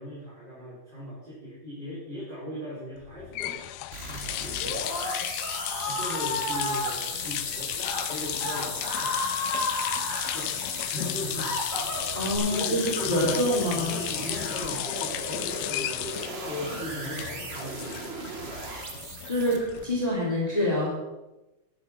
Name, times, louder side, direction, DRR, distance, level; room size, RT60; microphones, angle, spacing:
voice 1, 0.0-4.8 5.9-7.7 8.0-9.1 10.3-11.5 11.8-12.2 12.4-18.0, equal, 35° right, -10 dB, 5.0 m, -38 dB
sound 1, 3.0-20.1, left 15 dB, 80° left, 1.6 m, -34 dB
sound 2, 3.9-19.8, right 3 dB, 75° right, 0.5 m, -38 dB
Screaming, 4.5-6.9 7.7-8.0 8.4-10.4 11.0-12.4, left 2 dB, 30° left, 2.2 m, -32 dB
voice 2, 12.1-14.1 19.3-20.9, left 1 dB, 10° left, -4 dB, 3.6 m, -26 dB
11.5 x 9.8 x 5.6 m, 1.0 s
omnidirectional pair, 3.5 m